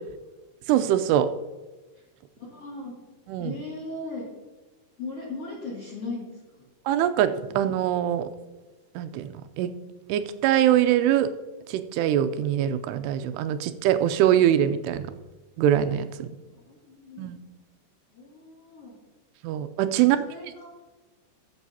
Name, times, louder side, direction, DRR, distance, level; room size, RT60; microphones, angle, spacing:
voice 1, 0.7-1.3 3.3-3.6 6.9-8.3 9.0-9.7 10.1-11.3 11.7-15.1 15.6-16.3 17.2-17.4 19.4-20.2, right 11 dB, 85° right, 10 dB, 2.7 m, -23 dB
voice 2, 2.4-2.9 3.4-4.3 5.0-6.6 13.5-13.6 16.5-17.3 18.1-19.0 19.5-19.6 19.9-20.7, left 3 dB, 40° left, -5 dB, 2.8 m, -38 dB
17.5 x 7.9 x 2.8 m, 1.2 s
omnidirectional pair, 4.8 m